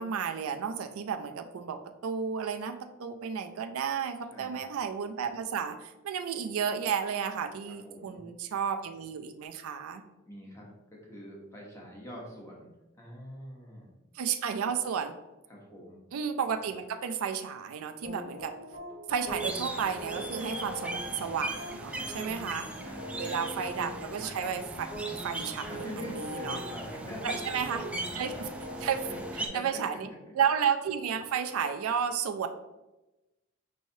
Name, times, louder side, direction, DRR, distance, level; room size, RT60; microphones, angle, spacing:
voice 1, 0.0-10.0 14.2-15.1 16.1-18.5 19.1-22.7 23.2-24.9 25.2-25.7 26.1-26.6 27.2-27.8 28.1-28.3 28.8-29.1 29.3-30.1 30.4-32.5, right 7 dB, 85° right, 7 dB, 0.4 m, -32 dB
voice 2, 4.3-4.7 7.7-8.2 10.3-10.7 11.0-13.9 15.5-16.0 21.9-22.3 22.8-23.5 25.7-28.5 29.1-29.8 30.2-30.3, equal, 15° left, -2 dB, 1.0 m, -44 dB
sound 1, 18.0-29.3, equal, 65° left, 1.3 m, -42 dB
sound 2, 19.3-29.5, right 2 dB, 5° right, 0.3 m, -39 dB
5.3 x 3.2 x 2.7 m, 1.0 s
head